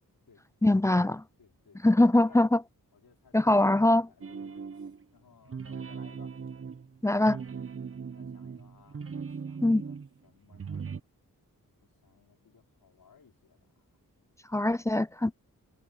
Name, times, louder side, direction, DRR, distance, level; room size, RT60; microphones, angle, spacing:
voice 1, 0.6-1.2 1.8-2.6 3.3-4.1 7.0-7.4 9.6-9.8 14.5-15.3, left 1 dB, 10° left, 0.3 m, -22 dB
voice 2, 1.4-2.5 2.9-6.4 8.1-10.9 11.8-13.9, left 6 dB, 80° left, 4.6 m, -60 dB
sound 1, 4.2-5.0 5.4-10.1 10.5-11.0, right 6 dB, 40° right, 0.8 m, -39 dB
wide cardioid pair, 120°, 35 cm